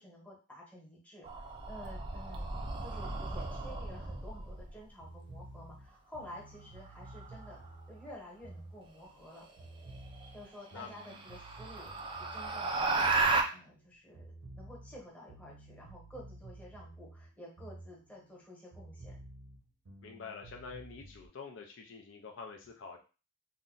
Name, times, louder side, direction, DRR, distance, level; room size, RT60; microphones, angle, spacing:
voice 1, 0.0-2.5 2.8-7.6 7.9-9.5 10.3-13.1 13.5-19.2, left 1 dB, 5° left, -4 dB, 1.0 m, -51 dB
sound 1, 1.2-4.7 7.1-7.5 9.6-9.7 10.2-10.3 10.8-13.4, right 3 dB, 25° right, 0.4 m, -34 dB
sound 2, 3.8-9.3 9.6-13.9 14.1-18.4 18.7-21.3, right 2 dB, 85° right, 0.6 m, -52 dB
voice 2, 20.0-23.0, left 5 dB, 65° left, 3 dB, 0.5 m, -47 dB
2.6 x 2.2 x 3.8 m, 0.33 s
head